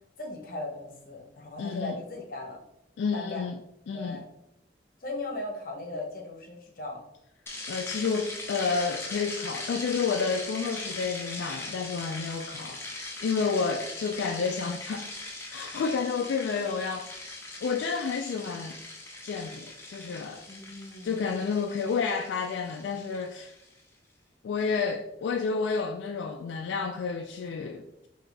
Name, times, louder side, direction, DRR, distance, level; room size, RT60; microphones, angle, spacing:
voice 1, 0.2-2.6 3.1-3.5 3.9-4.2 5.0-7.0 20.5-21.4, left 2 dB, 50° left, 0.9 m, -38 dB
voice 2, 1.6-1.9 3.0-3.5 3.9-4.2 7.7-12.8 13.2-15.2 15.5-17.1 17.6-18.8 19.2-20.4 21.0-23.6 24.4-28.1, left 5 dB, 80° left, 0.3 m, -30 dB
sound 1, 7.5-23.7, left 2 dB, 15° left, 0.5 m, -40 dB
3.9 x 2.8 x 3.4 m
head